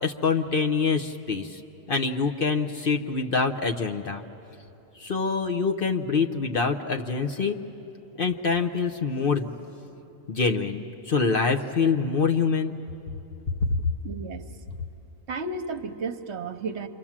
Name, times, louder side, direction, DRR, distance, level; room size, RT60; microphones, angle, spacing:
voice 1, 0.0-1.6 1.9-4.2 5.0-7.6 8.2-9.5 10.3-12.7 13.7-13.8, left 5 dB, 45° left, 4 dB, 1.0 m, -25 dB
voice 2, 14.0-14.5 15.3-16.9, right 4 dB, 60° right, 7 dB, 1.2 m, -33 dB
28.0 x 25.0 x 7.4 m, 2.9 s
omnidirectional pair, 1.4 m